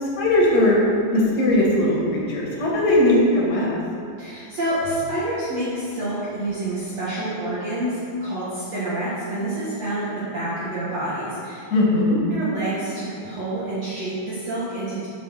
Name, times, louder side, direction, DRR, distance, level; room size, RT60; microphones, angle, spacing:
voice 1, 0.0-3.7 11.7-12.2, left 1 dB, 35° left, -4 dB, 1.9 m, -19 dB
voice 2, 4.2-11.6 12.3-15.1, right 1 dB, 55° right, -10 dB, 2.5 m, -28 dB
6.8 x 6.0 x 6.6 m, 2.4 s
omnidirectional pair, 3.9 m